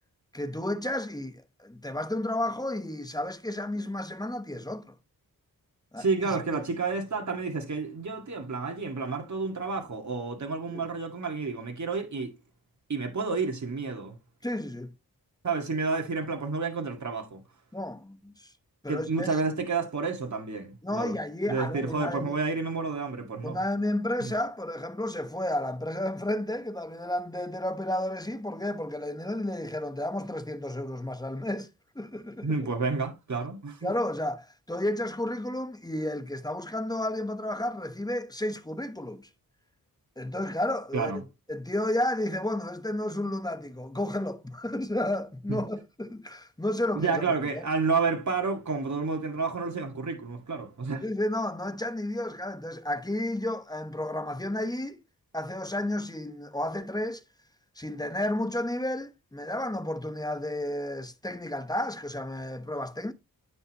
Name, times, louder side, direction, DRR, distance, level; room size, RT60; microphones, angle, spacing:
voice 1, 0.3-4.9 5.9-6.4 10.7-10.8 14.4-14.9 17.7-18.5 18.8-19.4 20.8-22.3 23.4-31.7 31.9-32.5 33.8-39.3 40.2-47.2 47.5-47.6 51.0-55.0 55.3-57.2 57.8-63.1, left 1 dB, 10° left, 1.0 m, -32 dB
voice 2, 6.0-12.3 12.9-14.2 15.4-17.4 18.9-21.2 21.5-23.6 24.2-24.3 32.4-33.9 40.9-41.2 45.5-45.6 46.9-51.0, right 4 dB, 50° right, 2.0 m, -30 dB
9.2 x 5.5 x 3.0 m
cardioid pair, 50°, 36 cm